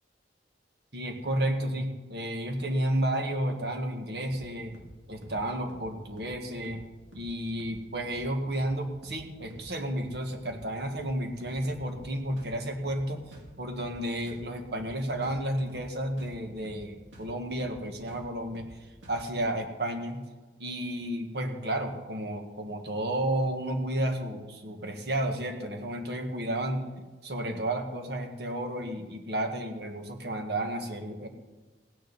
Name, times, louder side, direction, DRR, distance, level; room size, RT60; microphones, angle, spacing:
voice 1, 0.9-4.8 5.1-6.8 7.1-18.7 19.1-20.2 20.6-26.9 27.2-31.3, right 1 dB, 65° right, 4 dB, 1.7 m, -32 dB
sound 1, 4.3-4.5 4.7-5.0 5.2-5.4 5.7-5.9 6.2-6.4 6.6-6.9 7.1-7.3 7.6-7.8 8.1-8.3 8.6-8.8 9.0-9.2 9.5-9.7 10.0-10.2 10.5-10.7 10.9-11.1 11.4-12.1 12.4-12.6 12.8-13.1 13.3-13.5 13.8-14.0 14.3-14.5 14.7-15.0 15.2-15.4 15.7-15.9 16.2-16.4 16.6-16.9 17.1-17.3 17.6-17.8 18.1-18.3 18.5-18.8 19.0-19.2, equal, 80° right, 2.8 m, -48 dB
16.5 x 9.7 x 5.4 m, 1.2 s
head